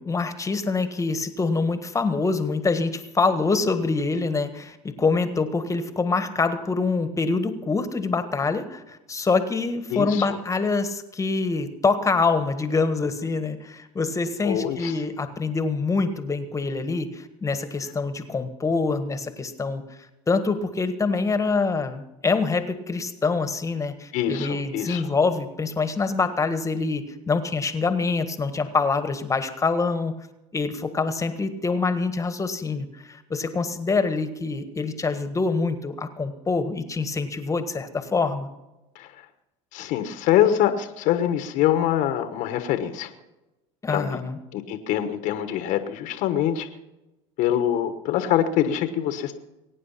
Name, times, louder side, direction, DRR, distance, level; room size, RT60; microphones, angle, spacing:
voice 1, 0.0-19.8 20.3-30.1 30.5-38.5 43.8-44.4, left 4 dB, 20° left, 10 dB, 1.5 m, -25 dB
voice 2, 9.9-10.2 14.4-15.0 24.1-25.0 38.9-39.1 39.7-43.1 43.9-44.2 44.5-46.7 47.4-49.3, left 11 dB, 65° left, 9 dB, 1.3 m, -24 dB
22.0 x 9.5 x 5.7 m, 1.0 s
supercardioid pair, 90°, 14 cm